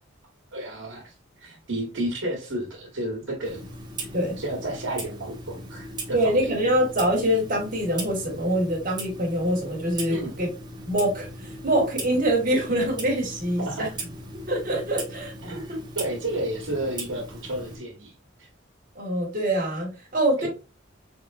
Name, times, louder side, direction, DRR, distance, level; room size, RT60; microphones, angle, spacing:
voice 1, 0.5-1.1 1.4-3.6 4.4-6.5 10.1-10.4 13.6-14.1 15.4-18.1 18.4-18.5 20.4-20.5, right 1 dB, 80° right, -2 dB, 1.3 m, -32 dB
Clock, 3.4-17.8, right 2 dB, 20° right, 0.8 m, -39 dB
voice 2, 6.1-10.5 10.9-13.9 14.5-15.3 15.7-15.8 18.9-20.5, right 1 dB, 45° right, 0 dB, 1.4 m, -24 dB
3.8 x 3.5 x 2.4 m, 0.31 s
head